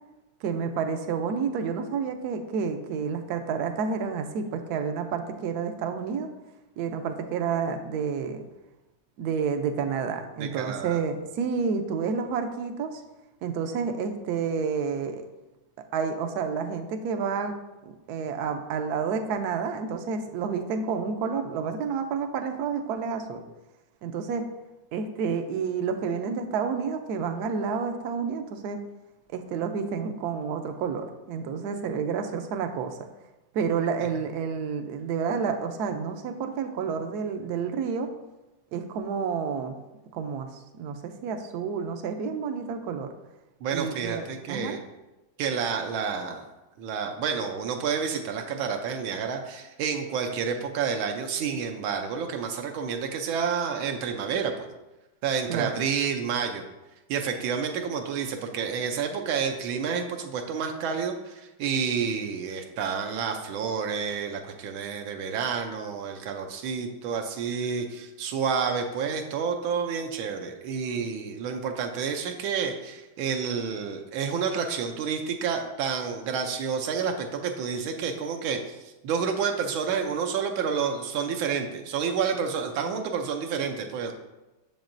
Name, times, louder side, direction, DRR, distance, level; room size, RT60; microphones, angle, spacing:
voice 1, 0.4-6.3 6.8-8.4 9.2-13.0 13.4-15.2 15.9-17.5 17.8-23.4 24.0-24.4 24.9-28.8 29.3-33.0 33.5-38.1 38.7-39.8 40.1-43.1 43.7-44.8 55.5-55.8, right 6 dB, 70° right, 6 dB, 1.0 m, -30 dB
voice 2, 10.4-11.0 43.6-44.8 45.4-46.5 46.8-54.7 55.2-56.6 57.1-84.1, right 6 dB, 85° right, 4 dB, 1.5 m, -29 dB
7.2 x 6.8 x 2.6 m, 1.0 s
omnidirectional pair, 2.2 m